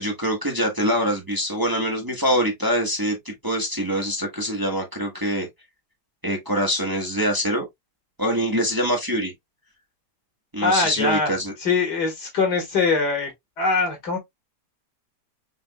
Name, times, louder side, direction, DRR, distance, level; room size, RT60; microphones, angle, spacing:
voice 1, 0.0-5.5 6.2-7.6 8.2-9.3 10.5-11.5, equal, 15° right, 1.1 m, -24 dB
voice 2, 10.6-11.3 11.6-13.3 13.6-14.2, left 4 dB, 85° left, 2.5 m, -22 dB
5.9 x 3.4 x 2.2 m
omnidirectional pair, 1.7 m